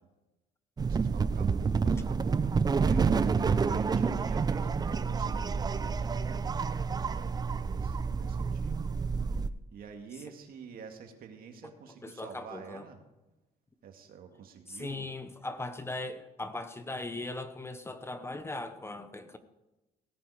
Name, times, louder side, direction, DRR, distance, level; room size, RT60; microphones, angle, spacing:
sound 1, 0.8-9.5, right 5 dB, 25° right, 0.5 m, -29 dB
voice 1, 0.8-5.8 6.2-6.9 7.1-8.9 9.7-13.0 13.8-15.1, right 6 dB, 60° right, 4 dB, 2.1 m, -48 dB
voice 2, 12.0-12.8 14.7-19.4, left 2 dB, 15° left, 10 dB, 0.8 m, -39 dB
17.5 x 9.2 x 4.8 m, 1.0 s
cardioid pair, 110°, 17 cm